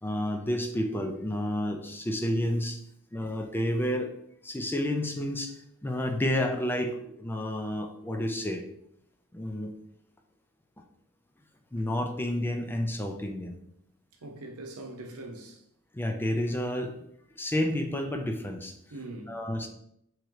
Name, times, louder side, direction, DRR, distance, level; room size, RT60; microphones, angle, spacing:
voice 1, 0.0-2.8 3.1-4.1 4.4-5.5 5.8-8.6 9.3-9.7 11.7-13.6 15.9-17.0 17.4-18.7 19.3-19.7, left 1 dB, 10° left, 0.4 m, -30 dB
voice 2, 14.2-15.6 18.9-19.3, right 2 dB, 90° right, 0.8 m, -42 dB
3.7 x 3.1 x 4.6 m
head